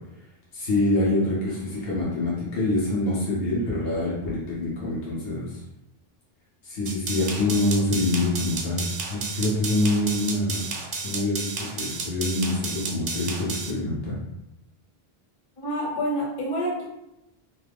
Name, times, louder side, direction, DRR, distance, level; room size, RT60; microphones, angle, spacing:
voice 1, 0.5-5.6 6.6-10.7 11.0-14.2, left 2 dB, 75° left, -7 dB, 1.1 m, -25 dB
sound 1, 6.9-13.7, right 4 dB, 55° right, 0.5 m, -32 dB
voice 2, 15.6-16.9, equal, 35° left, -4 dB, 0.7 m, -27 dB
2.7 x 2.4 x 3.4 m, 0.89 s
omnidirectional pair, 1.0 m